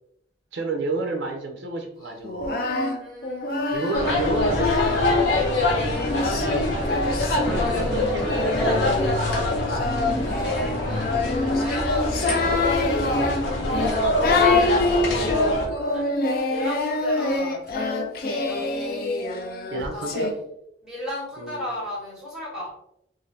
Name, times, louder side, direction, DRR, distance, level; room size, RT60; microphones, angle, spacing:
voice 1, 0.5-2.7 3.7-7.0 7.4-8.6 9.0-9.7 14.6-15.0 19.7-20.3 21.4-21.6, right 3 dB, 75° right, 2 dB, 0.4 m, -32 dB
Singing, 2.2-5.3 5.8-20.3, left 2 dB, 50° left, 0.4 m, -26 dB
voice 2, 3.0-3.6 7.6-8.1 10.4-13.9 14.3-16.1 16.5-17.9 18.3-18.8 19.9-20.4 20.8-22.7, left 1 dB, 5° right, -8 dB, 1.2 m, -36 dB
sound 1, 3.9-15.7, left 1 dB, 80° left, 0.8 m, -24 dB
2.5 x 2.5 x 3.1 m, 0.75 s
head